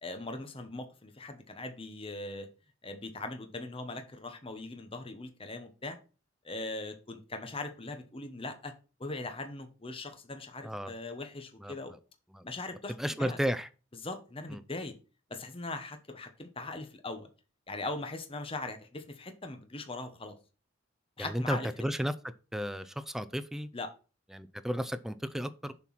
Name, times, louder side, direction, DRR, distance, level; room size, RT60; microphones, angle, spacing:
voice 1, 0.0-2.5 2.8-6.0 6.4-8.7 9.0-11.9 12.4-13.4 13.9-14.9 15.3-17.3 17.7-20.4 21.2-21.7 23.7-23.9, left 2 dB, 25° left, 1.1 m, -40 dB
voice 2, 13.0-13.7 14.5-14.6 21.2-22.1 22.5-23.7 24.3-25.7, equal, ahead, 0.5 m, -33 dB
7.1 x 4.6 x 5.9 m
head